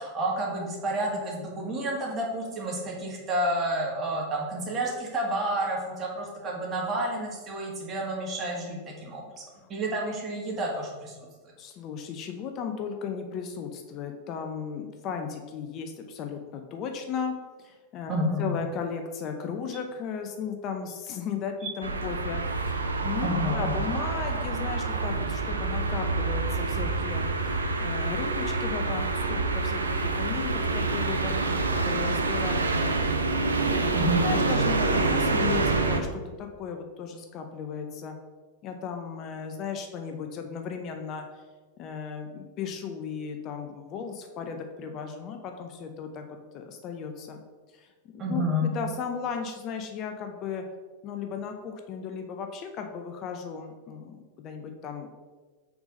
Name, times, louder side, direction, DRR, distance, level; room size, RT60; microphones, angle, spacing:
voice 1, 0.0-9.2 9.7-11.1 18.1-18.6 21.6-21.7 23.2-23.7 33.9-34.4 48.2-48.7, right 1 dB, 30° right, -2 dB, 1.8 m, -30 dB
voice 2, 11.6-33.1 33.4-34.0 34.2-38.2 38.6-41.4 41.8-46.2 46.5-47.4 47.7-50.6 51.0-55.1, left 6 dB, 40° left, 5 dB, 0.6 m, -36 dB
sound 1, 21.8-36.0, right 3 dB, 85° right, 0.5 m, -27 dB
4.6 x 4.0 x 5.1 m, 1.4 s
figure-of-eight pair, 95°, 0 cm